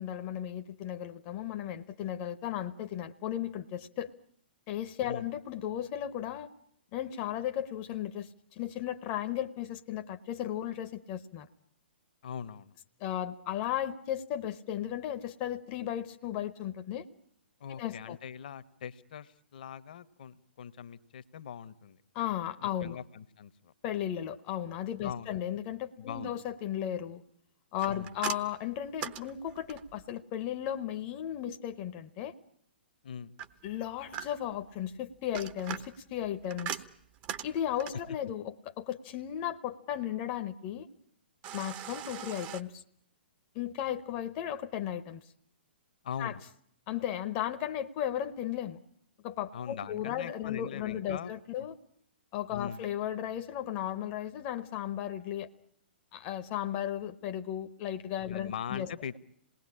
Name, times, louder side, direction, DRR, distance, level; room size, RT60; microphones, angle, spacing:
voice 1, 0.0-4.1 4.7-6.5 6.9-8.3 8.6-11.5 13.0-17.1 17.8-18.2 22.1-23.0 23.8-27.2 27.7-32.3 33.6-36.8 37.4-40.9 41.5-42.8 43.5-45.2 46.2-46.3 46.9-48.8 49.2-51.7 52.3-55.5 56.1-58.9, left 11 dB, 30° left, 8 dB, 1.0 m, -35 dB
voice 2, 12.2-12.7 17.6-22.0 22.6-23.7 25.0-25.4 26.0-26.4 27.9-28.1 33.0-33.3 46.0-46.4 49.5-51.3 51.6-51.7 52.5-52.8 58.3-59.2, left 8 dB, 50° left, 15 dB, 1.1 m, -41 dB
sound 1, 27.8-30.0 33.4-34.6 35.1-38.1 41.4-42.6, right 10 dB, 30° right, 1.0 m, -41 dB
27.5 x 19.5 x 9.9 m, 0.73 s
figure-of-eight pair, 115°, 6 cm